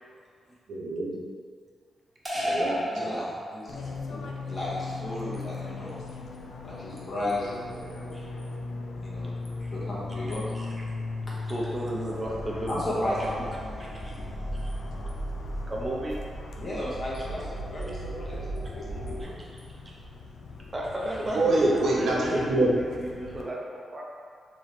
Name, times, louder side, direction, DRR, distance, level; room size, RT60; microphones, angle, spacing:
voice 1, 0.7-1.2 2.3-3.3 21.3-22.7, right 2 dB, 80° right, -5 dB, 0.8 m, -26 dB
sound 1, 2.2-3.9, equal, 5° right, 1.1 m, -31 dB
voice 2, 2.9-6.0 6.6-7.9 9.0-9.4 9.7-10.5 12.7-14.5 16.6-19.5, left 1 dB, 35° left, -7 dB, 1.1 m, -35 dB
Fixed-wing aircraft airplane, 3.7-23.4, left 3 dB, 80° left, 0.4 m, -39 dB
voice 3, 11.5-13.2 14.0-14.1 14.5-14.7 15.7-16.2 19.2-19.5 19.9-20.0 20.7-24.0, right 1 dB, 20° right, -4 dB, 0.7 m, -33 dB
sound 2, 12.2-19.2, right 1 dB, 60° left, 1.4 m, -37 dB
3.1 x 3.0 x 4.1 m, 2.1 s
wide cardioid pair, 125°, 0 cm